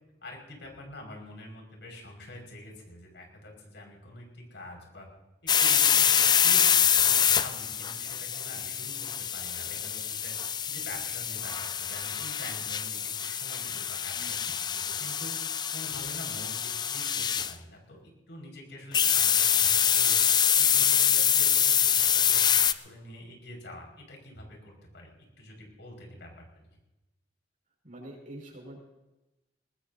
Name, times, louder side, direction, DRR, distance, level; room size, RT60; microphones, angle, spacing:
voice 1, 0.2-5.1 5.4-10.3 10.7-20.2 20.5-25.1 25.4-26.3 26.6-26.7, left 1 dB, 80° left, 0 dB, 5.4 m, -46 dB
sound 1, 5.5-17.5 18.9-22.7, left 8 dB, 25° left, 0.4 m, -25 dB
voice 2, 14.1-14.5 27.8-28.8, right 1 dB, 50° right, -1 dB, 5.7 m, -45 dB
21.5 x 20.0 x 2.8 m, 0.99 s
head